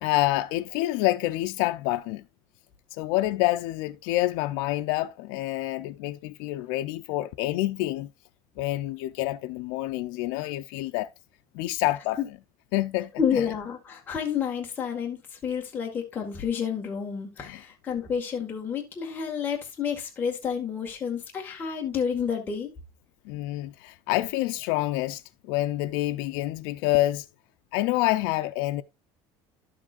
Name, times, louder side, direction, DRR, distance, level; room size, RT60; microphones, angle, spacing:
voice 1, 0.0-2.2 2.9-8.1 8.6-11.1 11.5-12.2 12.7-13.4 17.4-17.6 23.3-27.3 27.7-28.8, left 17 dB, 85° left, 0.5 m, -27 dB
voice 2, 13.2-22.7, left 7 dB, 20° left, 1.7 m, -30 dB
11.5 x 7.4 x 2.5 m
cardioid pair, 175°, 10 cm